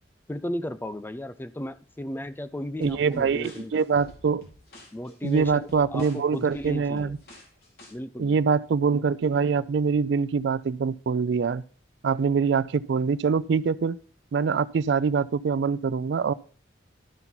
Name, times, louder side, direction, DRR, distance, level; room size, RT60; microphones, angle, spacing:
voice 1, 0.3-4.0 4.9-7.1 7.9-8.4, left 1 dB, 10° left, 0.3 m, -35 dB
sound 1, 2.8-7.9, left 1 dB, 55° left, 2.6 m, -50 dB
voice 2, 2.8-4.4 5.2-7.2 8.2-11.6 12.0-14.0 14.3-16.3, right 5 dB, 65° right, 0.4 m, -24 dB
12.5 x 5.8 x 4.0 m
head